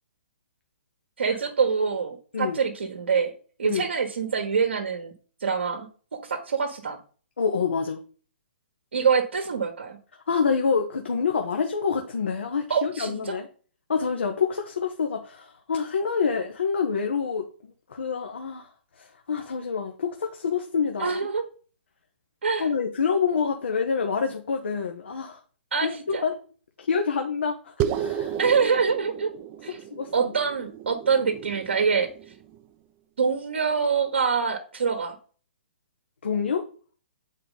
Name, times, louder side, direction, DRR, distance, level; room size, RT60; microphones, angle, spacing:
voice 1, 1.2-3.3 3.6-5.1 5.4-5.9 6.1-7.0 8.9-10.0 12.7-13.4 21.0-21.4 22.4-22.7 25.7-26.2 28.4-29.3 29.6-29.8 30.1-32.1 33.2-35.1, right 5 dB, 75° right, 5 dB, 1.2 m, -25 dB
voice 2, 7.4-8.0 10.3-13.5 13.9-18.7 19.0-21.2 22.6-25.4 25.8-26.3 26.8-28.4 29.7-30.3 36.2-36.6, left 6 dB, 75° left, 4 dB, 1.1 m, -27 dB
sound 1, 27.8-32.6, right 9 dB, 30° right, 0.6 m, -33 dB
7.9 x 4.4 x 3.8 m, 0.39 s
figure-of-eight pair, 125°, 6 cm